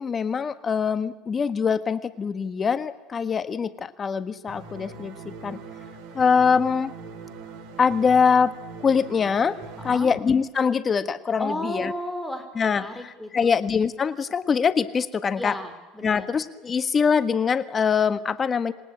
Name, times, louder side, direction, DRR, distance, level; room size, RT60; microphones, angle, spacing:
voice 1, 0.0-5.2 5.4-5.6 6.1-6.9 7.8-8.5 8.8-9.6 9.8-11.9 12.5-15.6 16.0-18.7, left 6 dB, 30° left, 12 dB, 1.5 m, -23 dB
sound 1, 4.5-10.0, right 4 dB, 65° right, 4.3 m, -41 dB
voice 2, 11.4-13.5 15.4-16.3, left 1 dB, 5° left, 7 dB, 4.1 m, -33 dB
27.0 x 19.0 x 8.7 m, 1.2 s
supercardioid pair, 110°, 0 cm